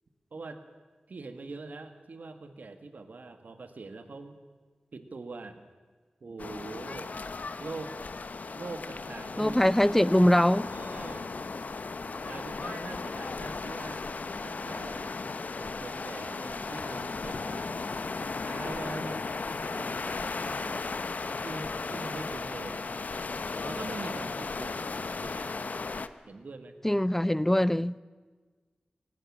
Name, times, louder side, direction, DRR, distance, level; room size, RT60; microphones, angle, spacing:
voice 1, 0.3-0.6 1.1-4.4 4.9-5.7 6.2-7.2 7.6-8.0 8.6-9.6 9.9-10.1 10.7-11.3 12.2-14.1 14.4-15.2 15.5-17.9 18.2-21.1 21.4-22.8 23.6-24.9 25.2-25.5 26.3-26.8, right 3 dB, 75° right, 1.7 m, -43 dB
sound 1, 6.4-26.1, left 4 dB, 70° left, 0.8 m, -36 dB
voice 2, 9.4-10.7 26.8-28.0, left 1 dB, 10° left, 0.5 m, -22 dB
18.0 x 17.5 x 8.7 m
cardioid pair, 50°, 3 cm